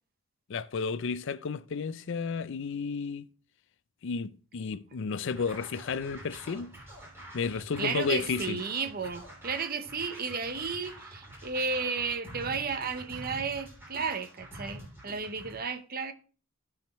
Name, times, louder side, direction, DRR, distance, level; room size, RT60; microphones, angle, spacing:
voice 1, 0.5-3.3 4.0-6.7 7.3-8.6, left 5 dB, 65° left, 0.5 m, -32 dB
Scratching (performance technique), 5.2-15.6, right 1 dB, 10° right, 3.3 m, -47 dB
voice 2, 7.8-16.1, right 5 dB, 45° right, 0.9 m, -33 dB
15.0 x 5.0 x 3.1 m
head